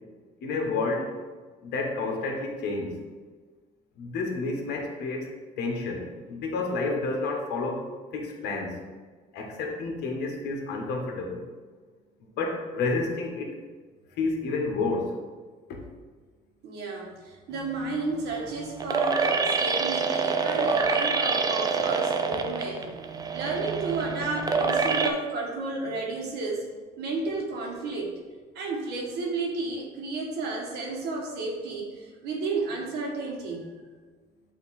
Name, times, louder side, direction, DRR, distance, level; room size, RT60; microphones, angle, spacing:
voice 1, 0.4-1.1 1.6-3.0 4.0-7.8 8.1-8.8 9.3-11.5 12.4-13.6 14.2-15.2, left 3 dB, 75° left, 1 dB, 1.2 m, -30 dB
voice 2, 16.6-22.9 23.3-26.7 27.0-28.1 28.5-33.7, right 3 dB, 80° right, -1 dB, 1.4 m, -32 dB
sound 1, 17.6-25.1, right 4 dB, 20° right, 0.5 m, -27 dB
7.9 x 2.8 x 4.2 m, 1.5 s
cardioid pair, 110°, 17 cm